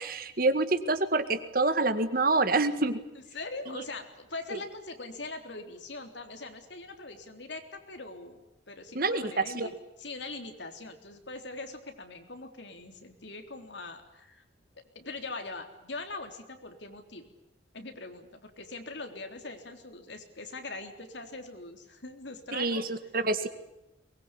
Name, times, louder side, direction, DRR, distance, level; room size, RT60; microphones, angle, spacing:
voice 1, 0.0-3.0 4.5-4.6 9.0-9.7 22.5-23.5, right 3 dB, 50° right, 10 dB, 1.9 m, -27 dB
voice 2, 3.3-8.4 8.7-9.7 10.0-14.4 15.0-17.3 17.7-22.9, left 3 dB, 75° left, 5 dB, 3.7 m, -42 dB
23.5 x 21.0 x 9.9 m, 0.92 s
head